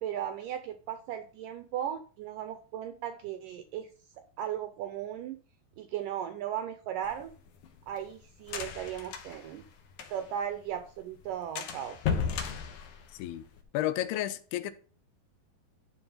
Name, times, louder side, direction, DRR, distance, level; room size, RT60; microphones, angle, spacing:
voice 1, 0.0-3.9 4.4-5.4 5.8-7.3 7.9-9.6 10.1-12.0, right 10 dB, 80° right, 1.9 m, -36 dB
sound 1, 7.0-10.4 10.7-10.8 11.1-11.2 11.6-13.6, left 6 dB, 65° left, 2.2 m, -35 dB
voice 2, 13.1-13.5 13.7-14.7, left 13 dB, 90° left, 2.6 m, -32 dB
12.0 x 4.0 x 5.4 m
omnidirectional pair, 4.6 m